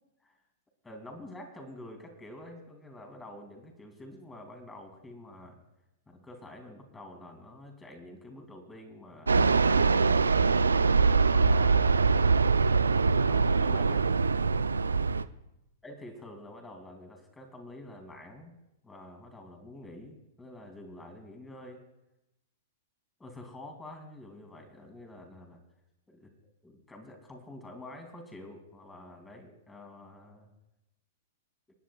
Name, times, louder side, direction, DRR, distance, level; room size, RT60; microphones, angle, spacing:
voice 1, 0.8-5.6 6.1-10.7 11.2-12.6 13.2-14.1 15.8-18.5 18.8-21.8 23.2-25.6 26.1-26.3 26.6-30.5, left 1 dB, 10° left, 3 dB, 2.9 m, -48 dB
Fixed-wing aircraft airplane, 9.3-15.2, right 4 dB, 85° right, 0.5 m, -23 dB
27.0 x 10.5 x 2.4 m, 0.90 s
figure-of-eight pair, 105°, 0 cm